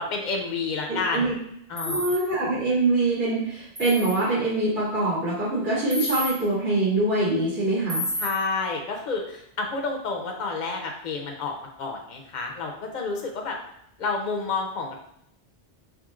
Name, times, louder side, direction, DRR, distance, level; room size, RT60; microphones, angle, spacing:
voice 1, 0.0-1.4 1.7-2.1 8.2-13.6 14.0-15.0, left 4 dB, 45° left, 1 dB, 0.8 m, -30 dB
voice 2, 0.9-1.3 1.8-8.0, right 2 dB, 80° right, -14 dB, 2.4 m, -24 dB
sound 1, 1.8-2.1 3.8-4.1 5.9-6.3 7.9-8.3, left 1 dB, 25° right, 1.0 m, -29 dB
6.1 x 3.3 x 2.5 m, 0.73 s
omnidirectional pair, 1.1 m